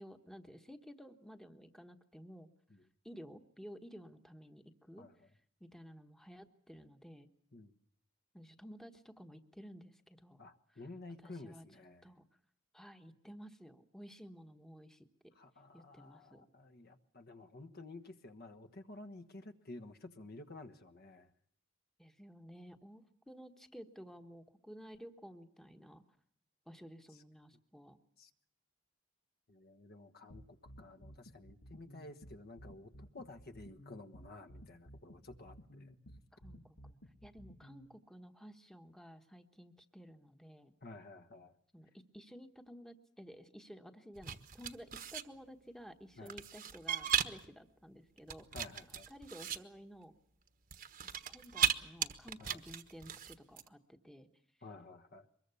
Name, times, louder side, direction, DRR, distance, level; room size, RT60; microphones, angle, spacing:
voice 1, 0.0-2.5 3.0-5.1 5.6-7.3 8.3-10.4 10.7-10.8 11.2-11.6 12.0-12.3 12.7-15.1 15.7-16.5 22.0-26.0 26.7-28.0 36.3-40.7 41.7-48.5 49.1-50.1 51.3-54.3, equal, ahead, 6 dB, 1.2 m, -53 dB
voice 2, 10.4-12.0 15.3-21.3 28.2-28.3 29.5-35.9 40.8-41.5 46.2-46.4 48.5-49.1 52.4-52.6 54.6-55.3, left 2 dB, 50° left, 8 dB, 1.4 m, -52 dB
sound 1, 30.3-37.9, equal, 80° left, 1.8 m, -55 dB
sound 2, 44.2-45.2 46.3-47.5 48.2-49.6 50.7-51.8 52.0-53.7, right 9 dB, 45° right, 1.3 m, -36 dB
23.5 x 21.5 x 7.0 m, 0.67 s
head